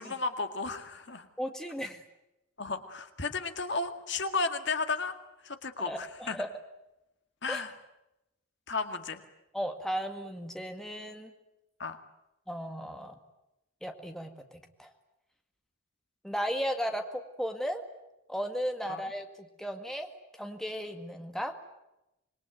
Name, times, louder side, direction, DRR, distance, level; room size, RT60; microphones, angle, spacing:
voice 1, 0.0-1.3 2.6-5.1 5.4-6.4 7.4-7.7 8.7-9.2 11.8-12.0 18.9-19.1, left 4 dB, 60° left, 8 dB, 2.0 m, -33 dB
voice 2, 1.4-2.0 5.8-6.5 7.5-7.6 9.5-11.3 12.5-13.2 13.8-14.9 16.2-17.8 18.3-20.1 20.3-21.5, equal, ahead, 5 dB, 1.9 m, -35 dB
26.0 x 22.0 x 9.2 m, 0.91 s
head